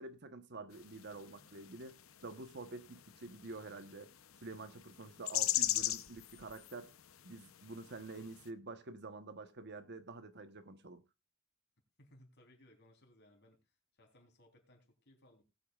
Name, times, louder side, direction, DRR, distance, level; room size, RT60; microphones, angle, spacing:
voice 1, 0.0-4.1 4.4-6.9 7.2-11.0, right 3 dB, 55° right, 1.1 m, -48 dB
sound 1, 0.7-8.5, left 14 dB, 75° left, 0.8 m, -41 dB
voice 2, 12.0-13.6 13.9-15.4, left 1 dB, 55° left, 3.7 m, -64 dB
19.5 x 8.5 x 2.4 m
head